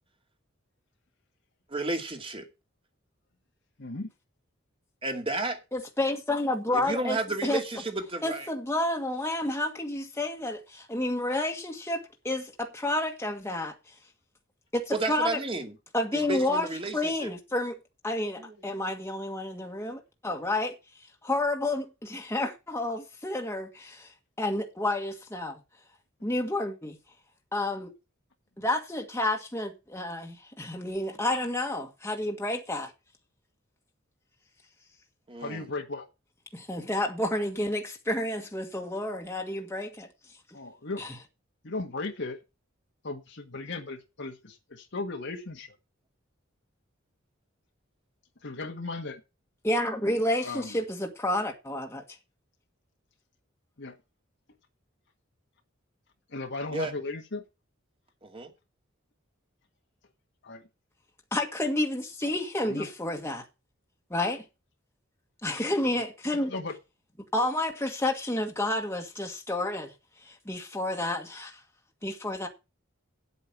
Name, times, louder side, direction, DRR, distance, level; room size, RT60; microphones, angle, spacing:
voice 1, 1.7-2.5 5.0-5.6 6.7-8.5 14.9-15.8 16.1-17.3 18.4-18.6 35.3-35.6 56.7-56.9 58.2-58.5, right 2 dB, 30° right, 2.4 m, -32 dB
voice 2, 3.8-4.1 35.4-36.1 40.5-41.0 41.6-42.4 43.0-45.8 48.4-49.2 50.4-50.8 53.8-54.0 56.3-57.4 60.4-60.6 62.6-62.9 66.5-66.7, left 3 dB, 60° left, 1.6 m, -36 dB
voice 3, 5.7-7.6 8.2-13.7 14.7-15.4 15.9-16.7 16.9-17.8 18.0-20.8 21.2-24.1 24.4-25.6 26.2-27.0 27.5-27.9 28.6-32.9 36.5-40.1 41.0-41.1 49.6-52.0 61.3-63.4 64.1-64.4 65.4-66.5 67.3-69.9 70.2-71.6 72.0-72.5, left 1 dB, 15° left, 1.7 m, -30 dB
9.1 x 8.5 x 6.0 m
head